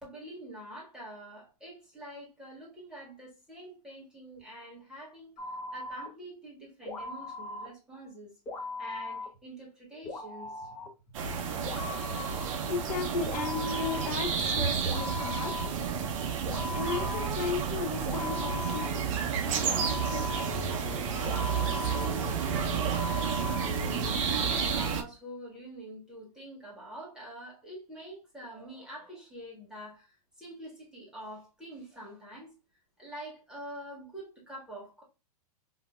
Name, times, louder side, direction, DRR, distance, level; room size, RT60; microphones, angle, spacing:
voice 1, 0.0-8.3 8.8-10.7 24.5-32.5 33.0-35.0, right 1 dB, 5° right, 1.7 m, -46 dB
sound 1, 5.4-6.1 6.9-7.7 8.5-9.3 10.1-10.9 11.7-12.5 13.3-14.1 14.9-16.0 16.5-17.7 18.1-24.1, left 3 dB, 20° left, 1.2 m, -39 dB
sound 2, 11.1-25.0, right 6 dB, 55° right, 0.7 m, -31 dB
voice 2, 12.7-15.5 16.7-22.8, left 5 dB, 70° left, 1.1 m, -37 dB
3.8 x 2.7 x 2.4 m
hypercardioid pair, 140°, 20 cm